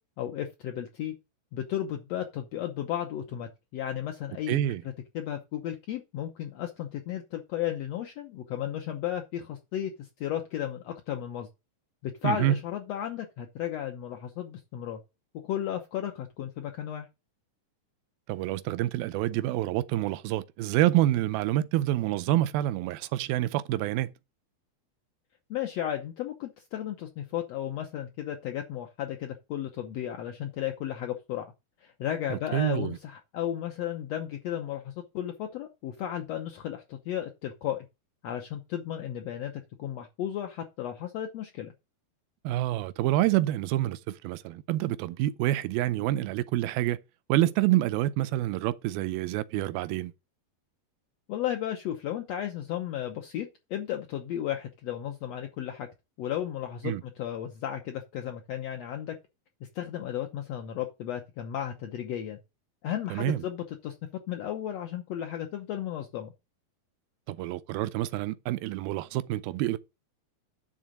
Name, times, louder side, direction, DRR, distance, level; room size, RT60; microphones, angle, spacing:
voice 1, 0.2-1.1 1.5-4.6 5.1-9.9 10.2-11.5 12.0-15.0 15.3-17.1 25.5-31.5 31.8-37.8 38.2-39.5 39.8-41.7 51.3-55.9 56.2-59.2 59.7-62.4 62.8-66.3, left 11 dB, 85° left, 1.4 m, -34 dB
voice 2, 4.5-4.8 12.2-12.6 18.3-24.1 32.3-33.0 42.4-47.0 47.3-50.1 56.8-57.0 63.1-63.4 67.3-69.8, right 14 dB, 85° right, 2.4 m, -27 dB
10.5 x 3.7 x 7.5 m
omnidirectional pair, 4.2 m